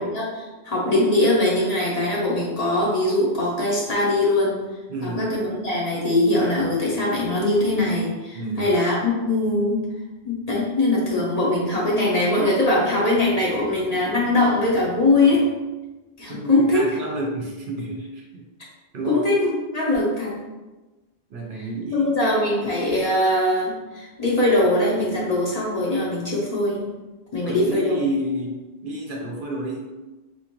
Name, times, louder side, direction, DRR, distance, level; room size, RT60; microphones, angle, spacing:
voice 1, 0.0-4.6 5.0-9.8 10.2-15.5 16.2-16.8 19.1-20.3 21.5-21.6 21.9-26.8 27.3-28.0, left 1 dB, 40° left, -5 dB, 0.8 m, -21 dB
voice 2, 4.9-5.3 8.3-8.7 16.3-18.4 18.9-19.2 21.3-22.1 27.5-29.9, right 1 dB, 60° right, 0 dB, 0.7 m, -30 dB
4.3 x 2.5 x 2.9 m, 1.2 s
omnidirectional pair, 1.1 m